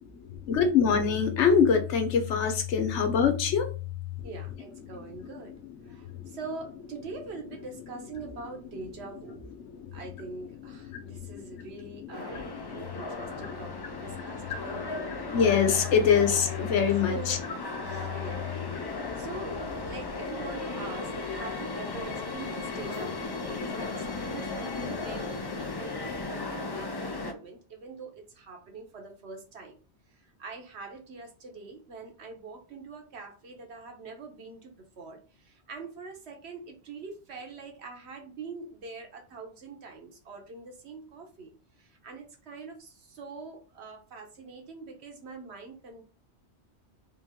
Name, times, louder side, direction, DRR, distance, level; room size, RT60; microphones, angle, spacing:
voice 1, 0.4-3.7 4.8-5.4 5.9-6.4 9.6-9.9 10.6-17.4 17.7-17.8 18.7-19.3 24.4-24.5 25.1-26.2, left 6 dB, 85° left, 8 dB, 1.1 m, -27 dB
voice 2, 4.2-5.5 5.8-9.5 9.9-15.1 17.0-17.4 17.8-19.5 19.9-29.7 30.4-41.5 41.8-46.0, right 4 dB, 70° right, 3 dB, 1.2 m, -44 dB
sound 1, 12.1-27.3, left 3 dB, 35° left, 0.4 m, -36 dB
3.5 x 3.1 x 3.6 m, 0.36 s
omnidirectional pair, 1.1 m